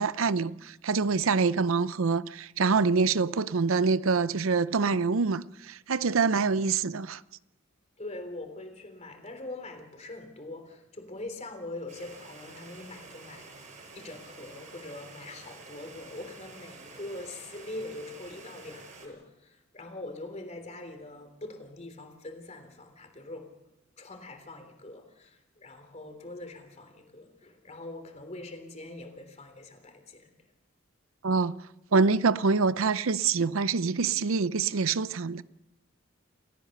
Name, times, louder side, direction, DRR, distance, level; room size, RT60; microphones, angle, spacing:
voice 1, 0.0-7.2 31.2-31.5 31.9-35.4, right 4 dB, 80° right, 0.6 m, -25 dB
voice 2, 8.0-23.5 24.0-30.3, left 2 dB, 35° left, 3.4 m, -43 dB
Stream, 11.9-19.1, right 3 dB, 40° right, 6.7 m, -49 dB
28.5 x 15.5 x 6.6 m
head